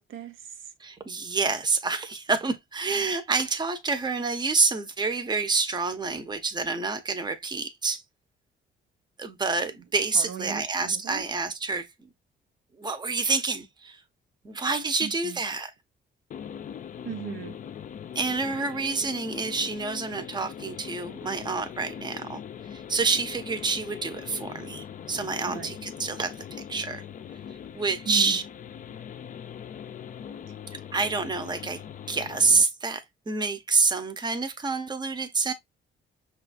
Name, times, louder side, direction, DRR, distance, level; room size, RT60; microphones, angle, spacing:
voice 1, 0.0-0.7 10.1-11.3 15.0-15.4 17.0-17.6 25.5-25.7 28.1-28.4, right 8 dB, 80° right, 0.6 m, -38 dB
voice 2, 0.8-8.0 9.2-11.9 12.8-14.0 14.4-15.7 18.1-22.4 22.7-27.0 27.5-28.4 30.7-35.5, right 4 dB, 20° right, 0.7 m, -28 dB
sound 1, 16.3-32.6, left 8 dB, 40° left, 0.4 m, -41 dB
5.6 x 2.4 x 2.4 m
cardioid pair, 90°, 20 cm